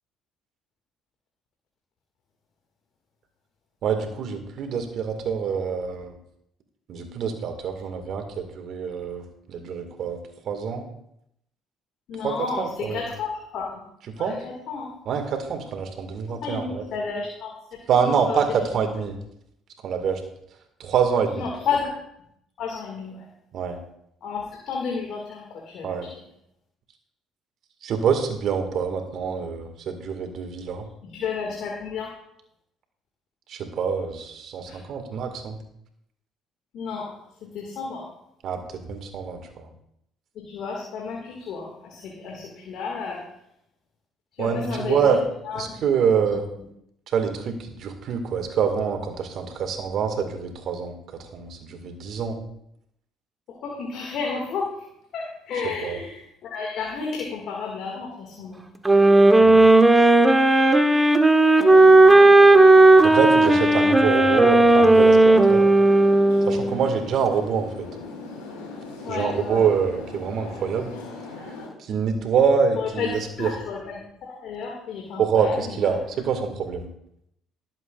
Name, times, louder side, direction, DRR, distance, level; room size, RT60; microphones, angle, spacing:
voice 1, 3.8-6.2 6.9-10.2 10.5-10.9 12.2-13.0 14.1-14.4 15.1-16.8 17.9-19.2 19.8-20.2 20.8-21.5 23.5-23.8 25.8-26.1 27.8-30.9 33.5-35.6 38.4-39.7 44.4-45.2 45.5-46.4 47.1-52.4 55.6-56.0 59.4-59.7 63.0-65.7 66.5-67.9 69.1-71.0 71.8-73.5 75.2-76.9, right 6 dB, 60° right, 5 dB, 2.0 m, -26 dB
voice 2, 12.1-13.8 14.2-14.9 16.3-18.8 21.3-21.9 22.6-23.3 24.2-26.1 31.0-32.1 34.7-34.8 36.7-37.1 37.4-38.1 40.3-43.2 44.3-45.7 46.3-46.4 53.5-54.8 55.1-58.7 63.4-64.0 69.0-69.6 72.8-76.0, left 5 dB, 65° left, -1 dB, 2.2 m, -32 dB
sound 1, 58.9-66.8, right 2 dB, 15° right, 1.4 m, -14 dB
sound 2, 61.7-71.7, left 3 dB, 85° left, 3.8 m, -39 dB
20.0 x 7.9 x 2.5 m, 0.75 s
hypercardioid pair, 55°, 0 cm